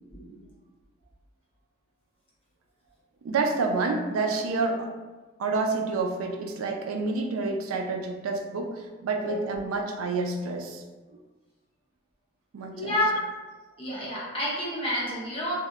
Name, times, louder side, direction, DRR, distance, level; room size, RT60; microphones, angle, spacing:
voice 1, 0.1-0.4 9.2-9.3 12.8-13.3 13.8-15.5, left 1 dB, 25° left, -7 dB, 0.7 m, -29 dB
voice 2, 3.2-4.9 5.4-10.8 12.5-13.0, right 3 dB, 90° right, 3 dB, 0.3 m, -28 dB
2.7 x 2.0 x 2.3 m, 1.3 s
head